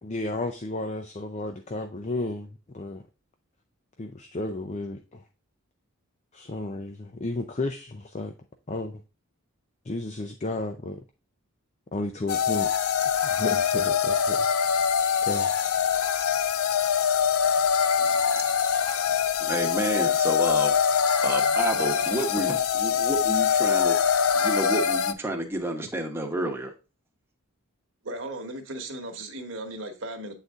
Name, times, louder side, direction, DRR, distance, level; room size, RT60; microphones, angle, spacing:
voice 1, 0.0-3.0 4.0-5.2 6.3-8.3 8.7-9.0 9.8-11.0 11.9-12.7 13.2-14.5 15.2-15.5, left 2 dB, 30° left, 0.5 m, -33 dB
sound 1, 12.3-25.1, left 7 dB, 80° left, 0.5 m, -24 dB
voice 2, 18.0-18.4 19.4-20.8 21.2-24.0 24.3-26.7, right 1 dB, 10° right, 0.9 m, -30 dB
voice 3, 28.0-30.3, right 1 dB, 60° right, 1.2 m, -36 dB
8.0 x 4.1 x 3.5 m
head